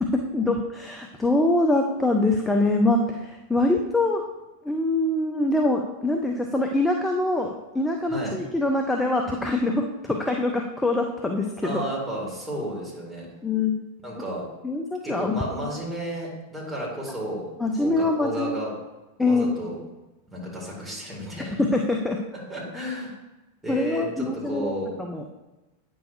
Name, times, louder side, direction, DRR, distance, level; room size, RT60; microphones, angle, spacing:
voice 1, 0.0-4.2 4.6-11.8 13.4-13.8 14.6-15.4 15.6-15.7 17.6-18.7 19.2-19.5 21.4-22.2 23.7-24.7 25.0-25.3, left 2 dB, 5° left, 2 dB, 0.6 m, -24 dB
voice 2, 8.1-8.4 11.6-13.2 14.0-14.5 15.0-17.5 17.8-18.7 19.3-19.8 20.3-21.6 22.3-23.2 23.6-24.9, equal, 10° right, -4 dB, 2.4 m, -32 dB
8.9 x 6.2 x 2.6 m, 1.1 s
figure-of-eight pair, 90°, 0 cm